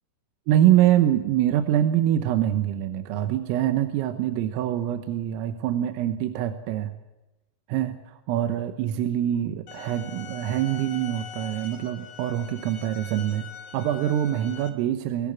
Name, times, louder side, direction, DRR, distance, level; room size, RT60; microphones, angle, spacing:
voice 1, 0.5-7.0 7.7-15.3, right 11 dB, 80° right, 8 dB, 3.6 m, -24 dB
sound 1, 9.7-14.7, left 8 dB, 70° left, 1.7 m, -42 dB
24.0 x 16.5 x 8.5 m, 0.99 s
omnidirectional pair, 6.0 m